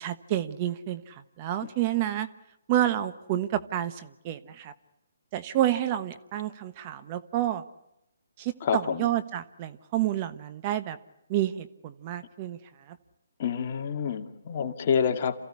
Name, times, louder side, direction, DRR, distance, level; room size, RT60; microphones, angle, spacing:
voice 1, 0.0-2.3 2.7-4.7 5.3-7.6 8.4-11.0 11.3-12.6 12.9-13.0, right 12 dB, 30° right, 11 dB, 1.2 m, -29 dB
voice 2, 8.6-9.1 13.4-15.4, left 7 dB, 40° left, 4 dB, 2.3 m, -27 dB
28.0 x 16.0 x 9.8 m, 0.83 s
hypercardioid pair, 150°, 0 cm